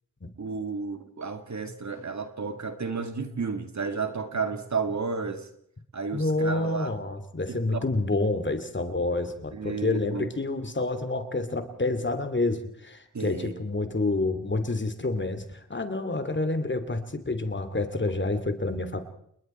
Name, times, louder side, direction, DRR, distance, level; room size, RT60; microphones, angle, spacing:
voice 1, 0.4-5.5 5.9-6.9 7.5-7.8 9.5-10.3 13.1-13.5, right 4 dB, 60° right, 2.4 m, -32 dB
voice 2, 6.1-19.0, left 2 dB, 35° left, 2.8 m, -28 dB
29.5 x 20.5 x 4.5 m
cardioid pair, 60°, 33 cm